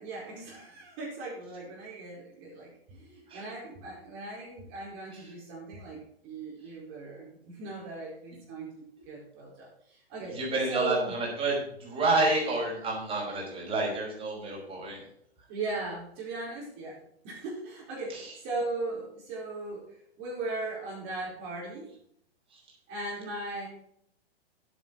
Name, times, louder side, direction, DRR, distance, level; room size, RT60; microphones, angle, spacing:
voice 1, 0.0-10.4 10.7-11.1 15.5-19.8 20.2-21.9 22.9-23.7, right 2 dB, 35° right, -4 dB, 4.6 m, -38 dB
voice 2, 10.3-15.0 18.1-18.3, right 2 dB, 15° right, -3 dB, 5.2 m, -29 dB
10.5 x 9.0 x 5.1 m, 0.70 s
hypercardioid pair, 135°, 31 cm